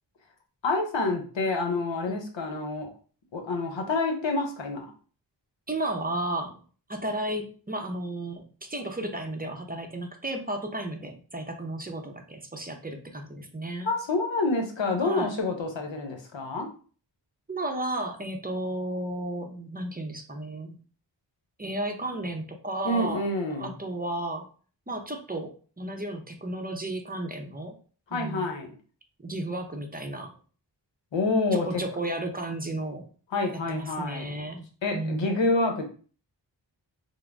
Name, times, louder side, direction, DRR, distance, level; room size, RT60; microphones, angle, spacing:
voice 1, 0.6-2.9 3.3-4.9 13.8-16.7 22.8-23.7 28.1-28.7 31.1-31.8 33.3-34.3 34.8-35.8, left 2 dB, 85° left, 3 dB, 0.8 m, -27 dB
voice 2, 5.7-6.6 6.9-13.9 15.0-15.3 17.5-20.8 21.6-23.2 23.6-24.5 24.9-27.7 28.1-28.5 29.2-30.3 31.5-33.1 33.7-34.6 34.9-35.3, right 1 dB, 20° right, 3 dB, 0.6 m, -33 dB
3.7 x 2.0 x 3.4 m, 0.40 s
cardioid pair, 50°, 44 cm